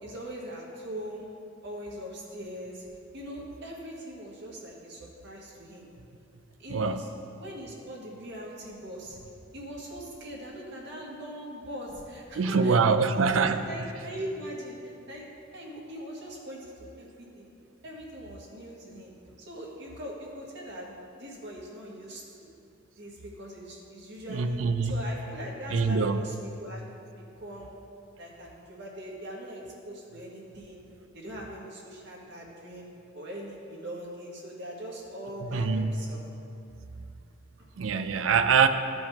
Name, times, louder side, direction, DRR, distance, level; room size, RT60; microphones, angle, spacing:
voice 1, 0.0-1.3 1.6-2.9 3.1-5.9 6.6-7.1 7.4-9.2 9.5-15.2 15.5-17.5 17.8-19.1 19.5-22.5 23.0-24.6 24.9-26.8 27.2-27.7 28.2-30.8 31.1-36.2 37.6-37.7, equal, 60° right, -3 dB, 1.6 m, -41 dB
voice 2, 6.7-7.1 12.3-13.9 24.3-25.0 25.7-26.2 35.4-36.0 37.8-38.7, right 5 dB, 90° right, 10 dB, 0.5 m, -24 dB
14.0 x 5.1 x 3.6 m, 2.5 s
head